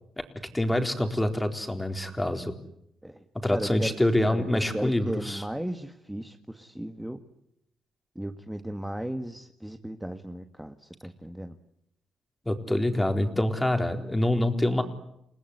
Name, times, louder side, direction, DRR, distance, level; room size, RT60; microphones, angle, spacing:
voice 1, 0.5-2.5 3.4-5.4 12.5-14.8, left 1 dB, 10° left, 6 dB, 4.1 m, -26 dB
voice 2, 3.5-3.9 4.3-7.2 8.2-11.6 13.9-14.1, right 1 dB, 5° right, 7 dB, 1.8 m, -36 dB
29.5 x 19.5 x 9.9 m, 0.79 s
cardioid pair, 85°, 0 cm